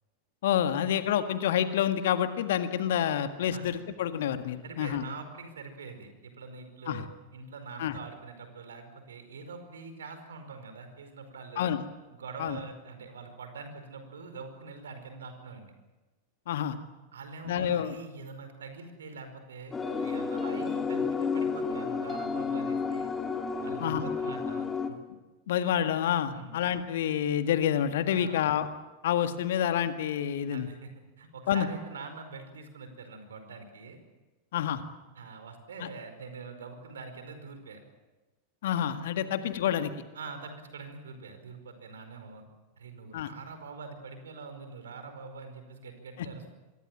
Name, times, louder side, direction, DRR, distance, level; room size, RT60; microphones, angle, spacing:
voice 1, 0.4-5.0 6.9-7.0 7.8-8.0 11.6-11.8 12.4-12.6 16.5-16.8 17.5-18.0 23.8-24.0 25.5-28.7 29.0-30.7 31.5-31.7 34.5-34.8 35.8-35.9 38.6-39.9 43.1-43.3, left 10 dB, 55° left, 9 dB, 1.8 m, -28 dB
voice 2, 4.6-7.0 7.3-11.7 12.1-15.7 17.1-23.1 23.6-24.7 26.3-26.6 28.1-28.4 30.5-30.9 31.2-34.0 35.1-37.8 39.2-39.4 40.1-42.4 42.8-46.5, right 4 dB, 65° right, 8 dB, 4.9 m, -44 dB
sound 1, 19.7-24.9, left 5 dB, 15° left, 2.8 m, -31 dB
26.5 x 22.5 x 7.5 m, 1.2 s
figure-of-eight pair, 90°, 0 cm